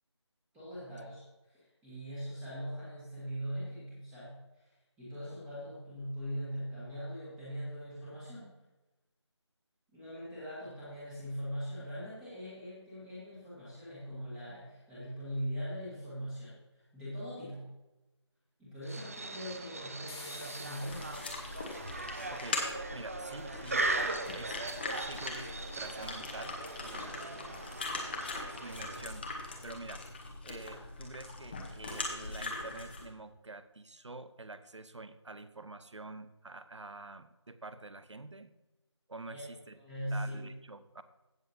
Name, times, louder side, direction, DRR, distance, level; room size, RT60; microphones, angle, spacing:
voice 1, 0.5-8.5 9.9-17.7 18.6-21.1 39.3-39.4 39.8-40.5, equal, 5° right, -9 dB, 1.7 m, -41 dB
sound 1, 18.8-29.2, right 2 dB, 30° right, 0.7 m, -39 dB
sound 2, 20.1-22.5, left 2 dB, 65° left, 2.2 m, -51 dB
sound 3, 20.8-33.1, left 3 dB, 20° left, 1.1 m, -41 dB
voice 2, 22.3-24.6 25.0-27.7 28.5-30.0 30.4-38.5 39.1-39.8 40.1-41.0, right 2 dB, 75° right, 12 dB, 0.9 m, -47 dB
16.0 x 6.9 x 2.8 m, 1.0 s
figure-of-eight pair, 165°, 15 cm